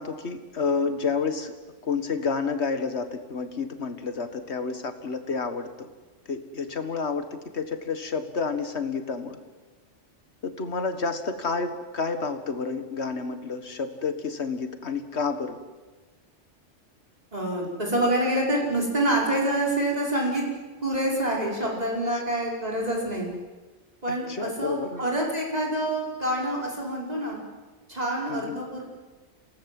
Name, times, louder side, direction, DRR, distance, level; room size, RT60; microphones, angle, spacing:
voice 1, 0.0-1.5 1.8-5.9 6.3-9.4 10.4-15.6 22.1-22.2 24.1-25.0 28.3-28.6, left 4 dB, 65° left, 8 dB, 2.0 m, -30 dB
voice 2, 17.3-20.4 20.8-23.3 24.0-27.4 27.9-28.8, right 1 dB, 35° right, -3 dB, 5.7 m, -26 dB
28.0 x 18.0 x 7.8 m, 1.3 s
omnidirectional pair, 1.2 m